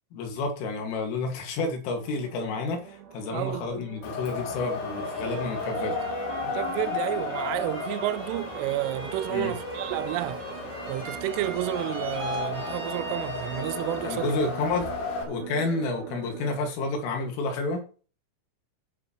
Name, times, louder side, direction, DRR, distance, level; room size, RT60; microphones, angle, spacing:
voice 1, 0.1-6.0 9.3-9.5 14.0-14.9 15.3-17.8, left 3 dB, 90° left, 4.7 m, -30 dB
sound 1, 2.0-16.6, right 9 dB, 70° right, 1.9 m, -45 dB
voice 2, 3.3-3.9 6.4-10.4 10.9-14.3, right 16 dB, 90° right, 3.2 m, -31 dB
Wind, 4.0-15.2, left 5 dB, 65° left, 4.2 m, -34 dB
sound 2, 4.5-14.3 14.7-15.4, right 2 dB, 40° right, 2.3 m, -39 dB
16.0 x 7.6 x 3.1 m
omnidirectional pair, 5.6 m